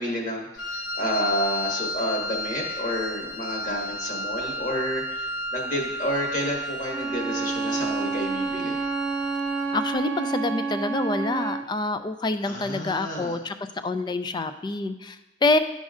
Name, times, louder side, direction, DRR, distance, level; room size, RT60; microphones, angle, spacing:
voice 1, 0.0-5.2 5.5-8.8 12.4-13.4, equal, 45° left, -1 dB, 1.6 m, -30 dB
Wind instrument woodwind instrument, 0.6-9.8, equal, 85° left, 1.1 m, -33 dB
Bowed string instrument, 6.9-11.7, right 4 dB, 80° right, 0.6 m, -29 dB
voice 2, 9.7-13.5 13.8-15.6, left 2 dB, 25° left, 10 dB, 0.3 m, -26 dB
11.0 x 5.2 x 2.5 m, 1.0 s
head